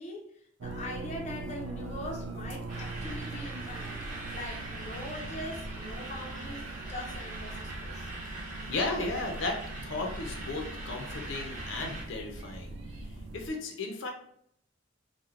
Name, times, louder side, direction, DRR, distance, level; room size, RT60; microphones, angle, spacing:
voice 1, 0.0-4.0 4.3-8.1, left 1 dB, 35° left, -1 dB, 0.5 m, -42 dB
sound 1, 0.6-13.5, right 2 dB, 85° right, 0.4 m, -41 dB
sound 2, 2.7-12.0, right 2 dB, 40° right, 0.9 m, -43 dB
voice 2, 8.7-14.1, left 3 dB, 85° left, 2 dB, 0.5 m, -35 dB
3.0 x 2.1 x 2.4 m, 0.68 s
head